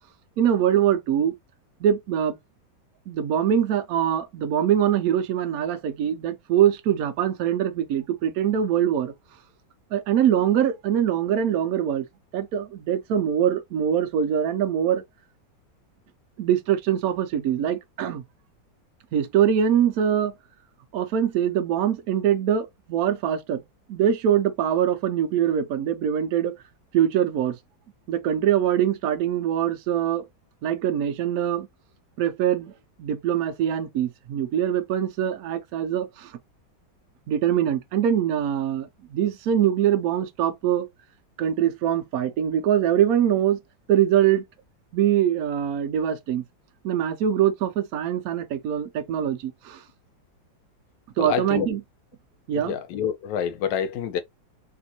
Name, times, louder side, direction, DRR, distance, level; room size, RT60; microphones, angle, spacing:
voice 1, 0.4-1.3 1.8-2.4 3.1-9.1 9.9-12.1 12.3-15.0 16.4-18.2 19.1-20.3 20.9-23.6 23.9-26.6 26.9-27.6 28.1-30.3 30.6-31.7 32.2-32.7 33.0-36.3 37.3-40.9 41.4-43.6 43.9-44.4 44.9-46.4 46.8-49.8 51.2-51.8 52.5-52.7, right 10 dB, 75° right, 0.8 m, -23 dB
voice 2, 51.2-51.7 52.5-54.2, left 8 dB, 80° left, 1.3 m, -27 dB
3.4 x 2.5 x 2.7 m
omnidirectional pair, 2.0 m